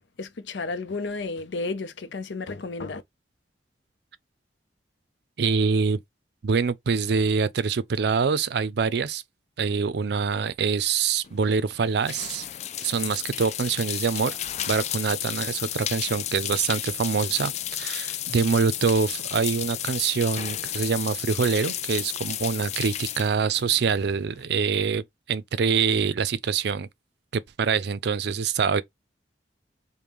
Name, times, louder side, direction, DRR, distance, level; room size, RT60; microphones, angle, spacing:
voice 1, 0.2-3.0, left 3 dB, 85° left, 0.6 m, -32 dB
voice 2, 5.4-6.0 6.4-9.2 9.6-12.4 12.8-14.4 14.7-26.9 27.3-28.8, right 5 dB, 65° right, 0.4 m, -25 dB
sound 1, 11.2-24.4, left 11 dB, 40° left, 0.3 m, -33 dB
5.2 x 2.2 x 3.0 m
head